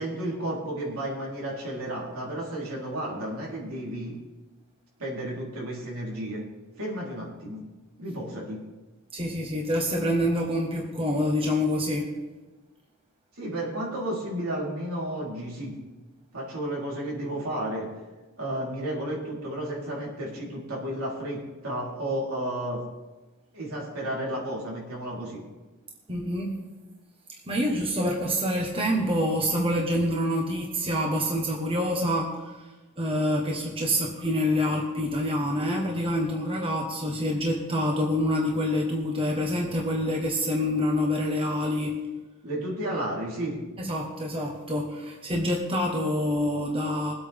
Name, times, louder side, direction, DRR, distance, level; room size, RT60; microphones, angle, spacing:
voice 1, 0.0-4.2 5.0-6.5 6.8-7.6 8.0-8.6 13.4-15.8 16.3-17.9 18.4-22.8 23.5-25.4 42.4-43.6, right 1 dB, 75° right, -4 dB, 3.9 m, -32 dB
voice 2, 9.1-12.2 26.1-26.6 27.5-32.5 33.0-42.0 43.8-47.1, equal, 25° right, -1 dB, 1.3 m, -26 dB
21.5 x 8.5 x 3.6 m, 1.2 s
head